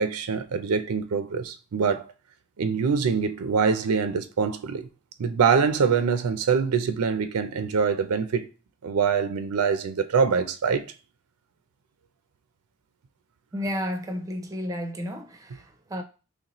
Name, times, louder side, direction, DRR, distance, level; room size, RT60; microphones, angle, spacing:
voice 1, 0.0-2.0 2.6-4.9 5.2-8.5 8.8-10.9, right 5 dB, 80° right, 0.4 m, -24 dB
voice 2, 13.5-16.0, equal, 15° right, 0.4 m, -32 dB
4.0 x 3.2 x 3.0 m
head